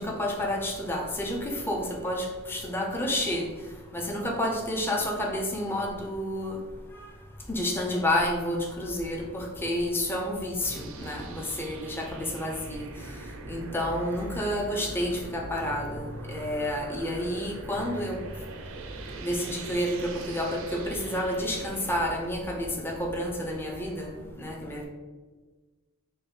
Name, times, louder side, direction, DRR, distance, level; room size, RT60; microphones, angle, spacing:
voice 1, 0.0-3.5 3.9-6.6 7.5-12.8 13.5-18.2 19.2-24.9, left 1 dB, 10° left, 0 dB, 0.4 m, -30 dB
sound 1, 10.6-22.1, right 3 dB, 65° right, 0.4 m, -43 dB
4.1 x 2.1 x 3.6 m, 1.3 s
head